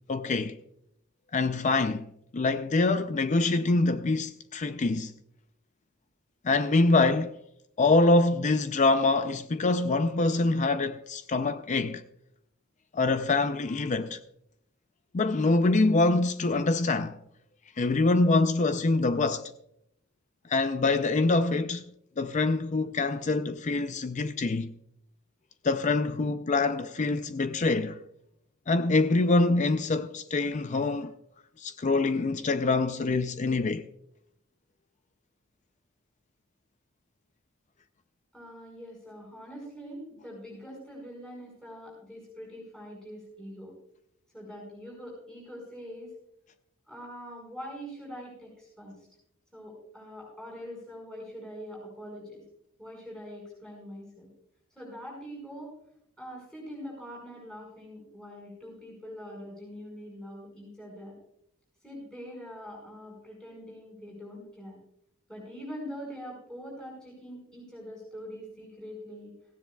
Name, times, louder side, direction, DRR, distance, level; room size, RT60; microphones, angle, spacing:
voice 1, 0.1-0.6 1.3-5.1 6.4-7.4 7.8-12.0 12.9-14.2 15.1-17.2 17.8-19.4 20.5-21.8 22.2-24.7 25.6-28.0 28.7-31.1 31.6-33.9, left 3 dB, 35° left, 0.4 m, -25 dB
voice 2, 38.3-43.7 44.3-46.1 46.9-49.1 49.5-52.4 52.8-54.3 54.7-55.7 56.2-61.2 61.8-64.8 65.3-69.3, equal, 5° left, 5.0 m, -43 dB
17.5 x 15.5 x 2.3 m
head